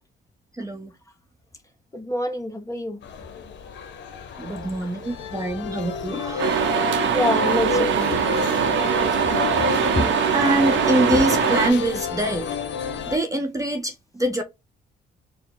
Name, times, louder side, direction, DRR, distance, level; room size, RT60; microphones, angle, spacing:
voice 1, 0.6-0.9 4.4-6.9 10.3-12.5 13.1-14.4, right 1 dB, 15° right, 0.7 m, -25 dB
voice 2, 1.9-3.0 7.1-8.2 9.7-10.1 11.1-11.2, left 1 dB, 15° left, 0.9 m, -26 dB
sound 1, 3.0-13.2, left 6 dB, 65° left, 0.7 m, -30 dB
sound 2, 6.4-11.7, right 8 dB, 75° right, 0.7 m, -22 dB
4.5 x 2.0 x 3.8 m
cardioid pair, 90°, 20 cm